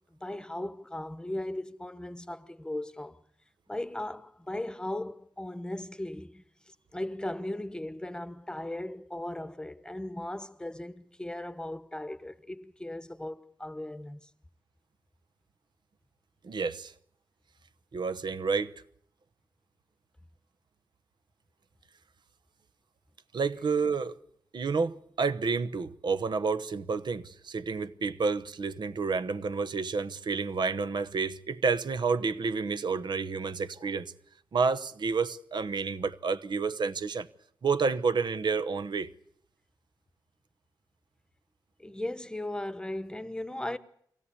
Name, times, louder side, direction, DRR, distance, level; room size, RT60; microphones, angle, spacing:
voice 1, 0.1-3.2 3.7-14.3 41.8-43.8, left 1 dB, 10° left, 1.1 m, -37 dB
voice 2, 16.4-16.9 17.9-18.7 23.3-24.1 24.5-34.1 34.5-37.3 37.6-39.1, right 4 dB, 75° right, 1.0 m, -30 dB
23.0 x 17.0 x 8.4 m
wide cardioid pair, 95°, 8 cm